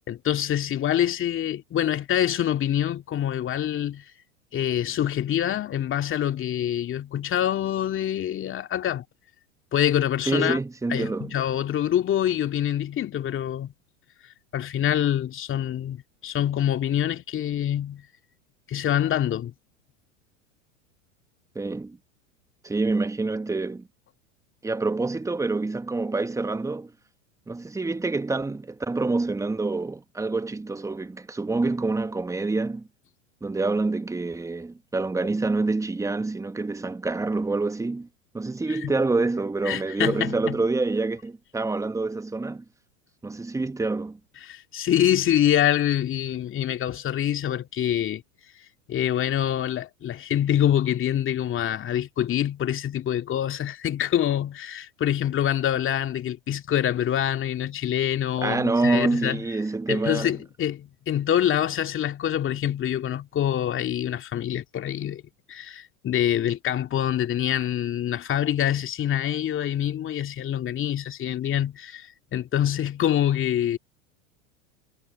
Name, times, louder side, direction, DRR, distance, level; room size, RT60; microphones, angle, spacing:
voice 1, 0.1-4.1 4.5-9.0 9.7-10.6 10.9-13.7 14.5-18.0 18.7-19.5 38.7-38.9 39.7-40.6 44.4-48.2 48.9-59.4 59.9-65.2 65.5-73.8, left 10 dB, 30° left, 2.4 m, -25 dB
voice 2, 10.3-11.3 21.5-22.0 22.6-23.9 24.6-26.9 27.5-32.9 33.4-38.1 38.3-42.6 43.2-44.2 58.4-60.3, right 3 dB, 10° right, 1.5 m, -27 dB
hypercardioid pair, 95°, 39 cm